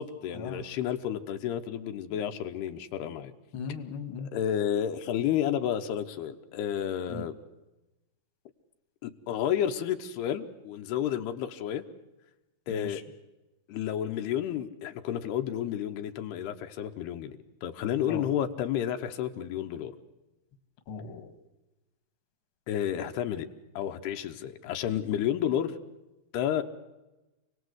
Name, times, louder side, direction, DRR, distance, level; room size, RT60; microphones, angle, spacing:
voice 1, 0.0-3.3 4.2-7.3 9.0-11.8 12.7-13.0 13.7-20.0 22.7-23.5 23.8-25.7 26.3-26.6, left 10 dB, 85° left, 6 dB, 3.1 m, -31 dB
voice 2, 3.5-4.3 7.1-7.3 12.7-13.0 18.1-18.2 20.9-21.3, left 5 dB, 45° left, 7 dB, 2.0 m, -38 dB
28.0 x 19.0 x 8.0 m, 1.0 s
omnidirectional pair, 4.6 m